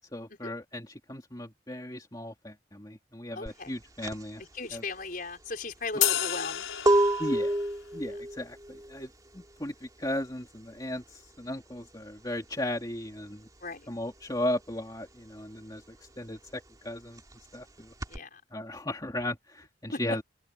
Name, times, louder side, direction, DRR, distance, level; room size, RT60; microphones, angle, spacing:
voice 1, 0.1-4.4 4.7-4.8 7.2-7.6 7.9-13.5 13.9-17.2 17.5-17.9 18.5-20.2, left 1 dB, 20° left, 2.7 m, -36 dB
voice 2, 3.4-3.7 4.5-6.7 13.6-13.9 18.1-18.4 19.9-20.0, left 3 dB, 45° left, 5.5 m, -37 dB
sound 1, 3.5-13.7 14.0-18.2, right 1 dB, 20° right, 2.8 m, -31 dB
sound 2, 6.0-7.6, left 12 dB, 85° left, 6.3 m, -30 dB
open air
head